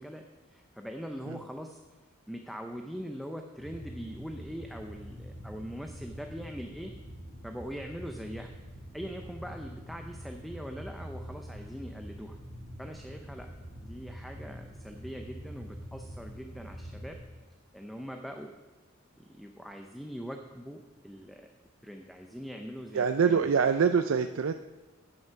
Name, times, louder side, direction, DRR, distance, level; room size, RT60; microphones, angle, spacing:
voice 1, 0.0-1.8 2.3-6.9 7.4-8.5 8.9-12.4 12.8-13.5 13.8-17.2 17.7-18.5 19.2-21.5 21.8-23.5, equal, ahead, 3 dB, 0.6 m, -42 dB
sound 1, 3.6-17.3, equal, 35° left, 3.5 m, -45 dB
voice 2, 22.9-24.5, right 6 dB, 70° right, 8 dB, 0.4 m, -25 dB
9.5 x 9.3 x 5.8 m, 1.2 s
head